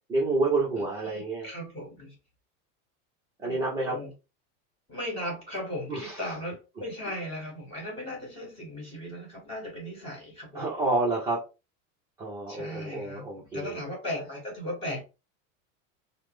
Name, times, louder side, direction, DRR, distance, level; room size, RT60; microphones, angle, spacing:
voice 1, 0.1-1.5 3.4-3.9 5.9-6.2 10.5-11.4 12.2-13.8, right 3 dB, 10° right, -5 dB, 0.6 m, -28 dB
voice 2, 1.0-2.1 3.4-4.1 4.9-10.6 12.5-15.0, left 1 dB, 15° left, -3 dB, 1.9 m, -37 dB
3.4 x 2.0 x 3.2 m, 0.28 s
supercardioid pair, 170°, 37 cm